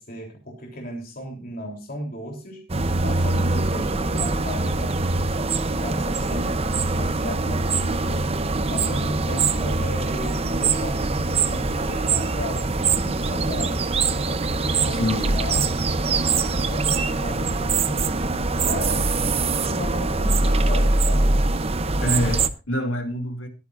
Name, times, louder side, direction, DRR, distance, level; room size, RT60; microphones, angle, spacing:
voice 1, 0.0-2.7 3.0-8.3 8.7-13.9 14.3-15.8 16.1-18.3 18.6-21.4, equal, 45° left, 3.4 m, -35 dB
sound 1, 2.7-22.5, right 3 dB, 30° right, 0.7 m, -23 dB
voice 2, 14.9-15.4 22.0-23.5, left 1 dB, 75° left, 2.6 m, -26 dB
21.5 x 9.6 x 2.6 m
head